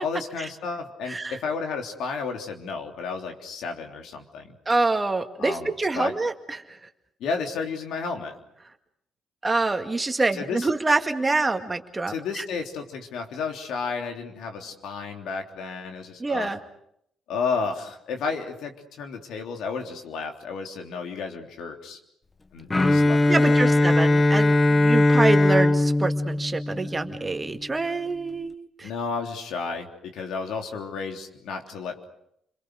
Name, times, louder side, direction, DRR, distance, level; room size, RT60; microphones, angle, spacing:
voice 1, 0.0-4.5 5.4-6.2 7.2-8.4 10.3-10.7 12.1-16.5 17.3-22.0 22.5-23.8 28.8-32.0, left 5 dB, 80° left, 4 dB, 3.3 m, -32 dB
voice 2, 1.1-1.4 4.7-6.8 9.4-12.4 16.2-16.6 23.3-28.9, right 3 dB, 20° right, 6 dB, 2.0 m, -26 dB
Bowed string instrument, 22.7-27.5, left 2 dB, 20° left, 1.3 m, -20 dB
30.0 x 22.5 x 6.5 m, 0.74 s
cardioid pair, 90°, 0 cm